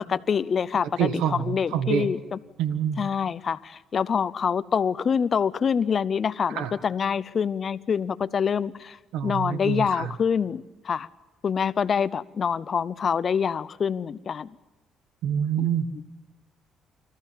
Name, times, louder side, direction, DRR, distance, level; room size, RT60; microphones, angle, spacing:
voice 1, 0.1-2.4 3.0-9.0 9.2-11.1 11.4-14.5 15.6-15.8, left 7 dB, 50° left, 0.6 m, -26 dB
voice 2, 1.0-2.1 2.6-3.0 6.5-6.7 9.1-10.1 15.2-15.9, right 8 dB, 85° right, 1.5 m, -26 dB
26.5 x 14.0 x 7.3 m
cardioid pair, 80°, 0 cm